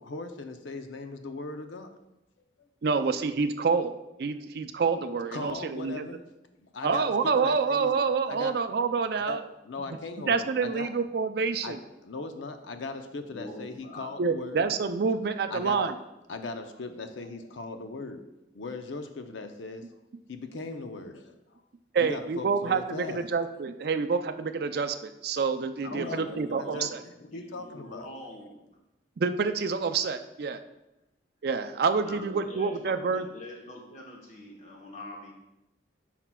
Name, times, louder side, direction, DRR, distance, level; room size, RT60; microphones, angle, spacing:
voice 1, 0.0-1.9 2.6-2.7 4.3-4.4 5.3-6.2 6.6-7.9 8.3-8.6 9.1-9.4 9.6-10.9 11.6-14.7 15.5-15.9 16.3-18.2 18.5-20.0 20.3-21.6 22.0-23.2 25.8-28.1, left 3 dB, 80° left, 7 dB, 0.6 m, -39 dB
voice 2, 2.8-3.9 4.2-6.1 6.8-9.4 10.3-11.8 14.2-15.9 21.9-22.8 23.1-26.9 29.2-30.6 31.4-33.2, right 5 dB, 55° right, 9 dB, 0.4 m, -27 dB
voice 3, 13.3-14.1 25.8-27.0 27.2-28.7 32.0-35.3, left 1 dB, 40° left, -1 dB, 1.2 m, -44 dB
9.9 x 5.8 x 2.3 m, 0.92 s
head